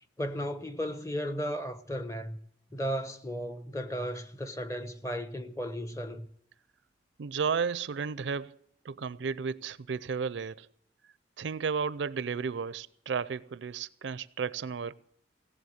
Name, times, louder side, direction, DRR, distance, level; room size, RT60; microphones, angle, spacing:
voice 1, 0.2-2.4 2.7-6.3, equal, 15° left, 0.8 m, -35 dB
voice 2, 7.2-8.6 8.8-10.7 11.4-15.0, right 6 dB, 70° right, 0.5 m, -33 dB
17.0 x 7.7 x 7.8 m
head